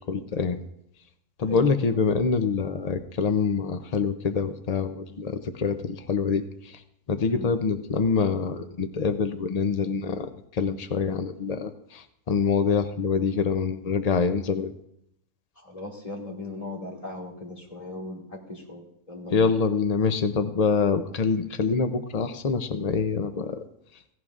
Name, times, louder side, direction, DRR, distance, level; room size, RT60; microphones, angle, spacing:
voice 1, 0.1-0.6 1.4-6.8 7.1-14.7 19.3-23.6, left 5 dB, 90° left, 9 dB, 0.3 m, -25 dB
voice 2, 15.6-19.5, left 2 dB, 20° left, -2 dB, 2.4 m, -38 dB
17.0 x 16.0 x 2.5 m, 0.76 s
omnidirectional pair, 1.7 m